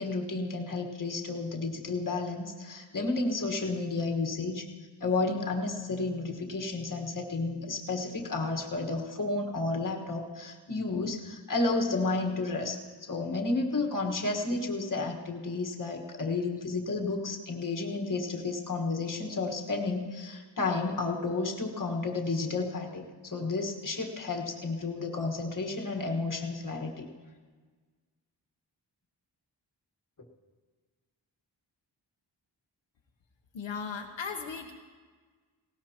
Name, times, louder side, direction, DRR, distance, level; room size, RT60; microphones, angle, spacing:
voice 1, 0.0-4.7 5.0-27.1, left 3 dB, 45° left, 1 dB, 1.6 m, -32 dB
voice 2, 33.5-34.7, left 5 dB, 80° left, 2 dB, 1.0 m, -36 dB
18.5 x 18.0 x 2.9 m, 1.5 s
wide cardioid pair, 110°, 44 cm